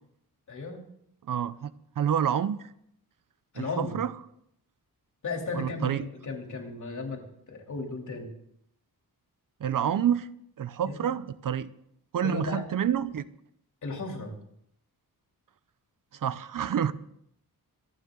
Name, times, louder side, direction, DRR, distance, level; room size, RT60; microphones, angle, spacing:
voice 1, 0.5-0.8 3.5-4.0 5.2-8.3 10.8-11.1 12.2-12.6 13.8-14.4, left 3 dB, 50° left, 3.1 m, -35 dB
voice 2, 1.3-1.7 2.0-2.6 3.6-4.1 5.5-6.1 9.6-10.3 10.6-11.7 12.1-13.2 16.2-16.9, right 9 dB, 60° right, 0.7 m, -28 dB
25.5 x 9.4 x 3.8 m
wide cardioid pair, 145°, 37 cm